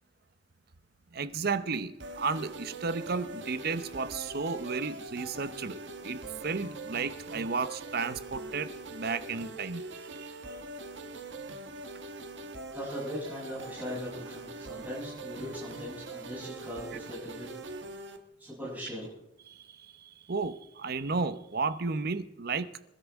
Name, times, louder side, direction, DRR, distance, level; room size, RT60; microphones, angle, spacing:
voice 1, 1.1-10.6 19.5-22.7, right 4 dB, 60° right, 0.8 m, -33 dB
sound 1, 2.0-18.2, right 2 dB, 80° right, 1.5 m, -43 dB
voice 2, 12.7-17.5 18.4-19.1, equal, 10° right, 7.4 m, -39 dB
27.5 x 12.5 x 3.6 m
head